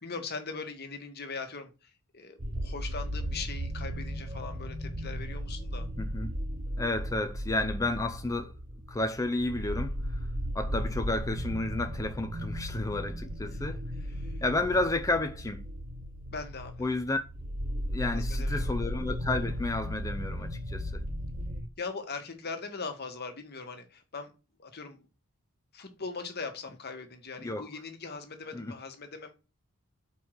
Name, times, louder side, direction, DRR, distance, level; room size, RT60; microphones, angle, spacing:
voice 1, 0.0-1.7 2.1-5.9 14.1-14.4 16.3-16.9 18.1-18.7 21.8-24.3 24.6-25.0 25.7-29.3, left 4 dB, 45° left, 1.5 m, -40 dB
sound 1, 2.4-21.6, equal, 40° right, 1.3 m, -35 dB
voice 2, 6.0-6.3 6.8-8.5 8.9-9.9 10.5-13.8 14.4-15.6 16.8-17.2 17.9-21.0 27.4-27.7 28.5-28.7, left 2 dB, 15° left, 0.6 m, -31 dB
5.3 x 4.7 x 6.4 m
head